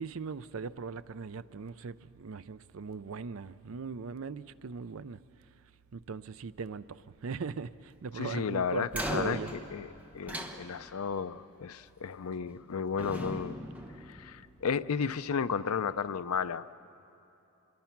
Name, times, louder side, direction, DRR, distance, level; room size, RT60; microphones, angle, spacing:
voice 1, 0.0-5.2 5.9-9.5, right 5 dB, 65° right, 0.5 m, -39 dB
voice 2, 8.2-9.9 10.1-13.6 14.1-16.7, left 6 dB, 80° left, 0.5 m, -33 dB
sound 1, 8.9-11.2 12.3-12.7 13.0-14.7, equal, 5° right, 1.0 m, -39 dB
26.0 x 22.0 x 5.9 m
head